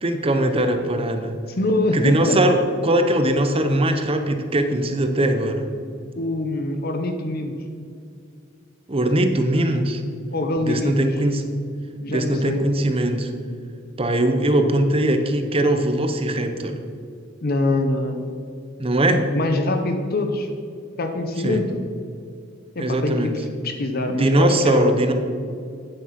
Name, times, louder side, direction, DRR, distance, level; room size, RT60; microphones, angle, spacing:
voice 1, 0.0-1.4 1.9-5.6 8.9-10.0 10.7-11.4 12.1-13.3 14.0-16.8 18.8-19.3 21.4-21.6 22.8-23.3 24.1-25.1, right 1 dB, 30° right, 7 dB, 0.8 m, -20 dB
voice 2, 1.5-2.4 6.2-7.6 10.3-11.1 12.0-12.6 17.4-18.3 19.3-20.5 21.0-21.8 22.7-23.3 23.6-25.0, left 2 dB, 50° left, 5 dB, 0.8 m, -24 dB
9.1 x 7.6 x 5.8 m, 2.3 s
head